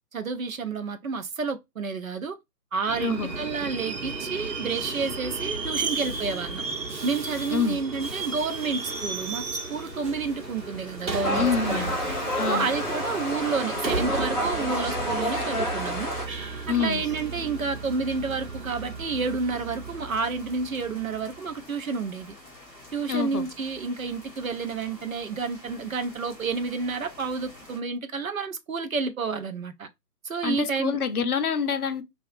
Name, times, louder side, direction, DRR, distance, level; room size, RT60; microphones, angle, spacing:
voice 1, 0.1-2.4 2.7-6.7 7.0-11.9 12.5-16.2 16.7-22.4 22.9-29.9 30.2-31.0, right 4 dB, 55° right, 0.5 m, -30 dB
Subway metro underground, 2.9-21.3, right 3 dB, 80° right, 0.9 m, -34 dB
voice 2, 3.0-3.4 7.5-7.8 11.3-11.9 12.4-12.7 16.7-17.0 23.1-23.5 30.4-32.0, left 6 dB, 65° left, 0.5 m, -26 dB
sound 1, 7.9-27.8, left 2 dB, 5° left, 1.0 m, -48 dB
sound 2, 11.2-16.2, equal, 25° left, 1.4 m, -29 dB
2.7 x 2.3 x 2.4 m
figure-of-eight pair, 145°, 50 cm